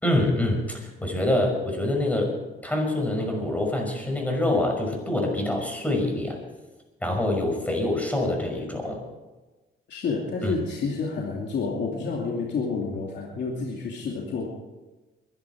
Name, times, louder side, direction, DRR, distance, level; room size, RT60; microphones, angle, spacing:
voice 1, 0.0-2.3 2.6-6.4 7.0-9.0 10.4-10.7, left 1 dB, 5° left, 1 dB, 5.8 m, -25 dB
voice 2, 9.9-14.5, left 4 dB, 60° left, -2 dB, 2.6 m, -29 dB
22.5 x 11.0 x 4.8 m, 1.2 s
cardioid pair, 90°, 20 cm